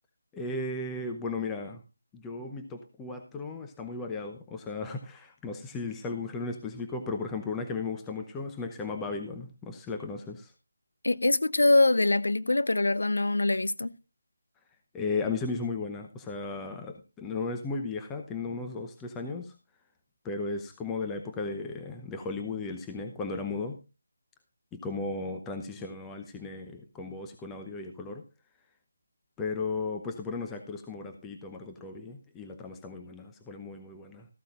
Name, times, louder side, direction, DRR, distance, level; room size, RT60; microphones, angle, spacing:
voice 1, 0.3-1.8 2.1-10.5 14.9-19.5 20.2-23.8 24.7-28.2 29.4-34.3, left 3 dB, 10° left, 0.9 m, -35 dB
voice 2, 11.0-13.9, left 2 dB, 75° left, 0.7 m, -24 dB
14.0 x 13.0 x 2.5 m
figure-of-eight pair, 160°, 0 cm